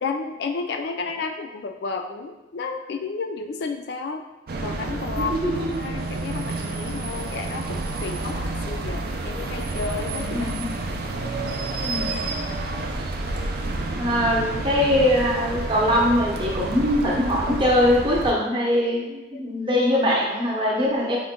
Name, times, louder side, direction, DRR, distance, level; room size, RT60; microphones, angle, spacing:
voice 1, 0.0-4.2 4.6-10.5 11.6-12.0, left 4 dB, 55° left, 5 dB, 0.4 m, -32 dB
sound 1, 4.5-18.3, right 2 dB, 50° right, 0.4 m, -29 dB
voice 2, 5.1-5.7 10.3-10.7 11.8-12.1 14.0-21.2, left 1 dB, 25° right, -3 dB, 0.7 m, -22 dB
4.9 x 2.2 x 3.6 m, 1.0 s
head